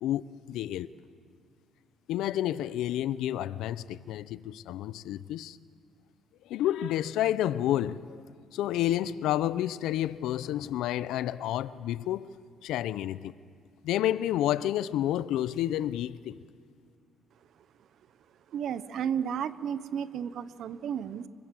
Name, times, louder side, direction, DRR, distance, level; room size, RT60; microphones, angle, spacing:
voice 1, 0.0-0.9 2.1-5.6 6.4-8.2 8.5-12.3 12.6-13.3 13.8-16.4, left 12 dB, 90° left, 0.6 m, -30 dB
voice 2, 18.5-21.3, right 8 dB, 70° right, 0.9 m, -33 dB
25.0 x 23.0 x 7.7 m
cardioid pair, 90°, 0 cm